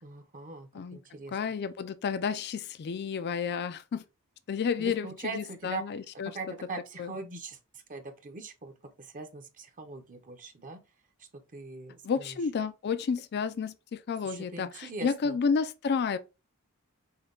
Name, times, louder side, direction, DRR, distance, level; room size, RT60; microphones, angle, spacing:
voice 1, 0.0-1.4 4.8-5.8 6.3-10.8 11.2-12.4 14.2-15.4, right 3 dB, 35° right, 0.7 m, -41 dB
voice 2, 1.3-4.0 4.5-5.1 5.3-6.3 7.0-7.1 12.0-16.2, left 6 dB, 50° left, 0.4 m, -31 dB
5.6 x 2.2 x 3.8 m
head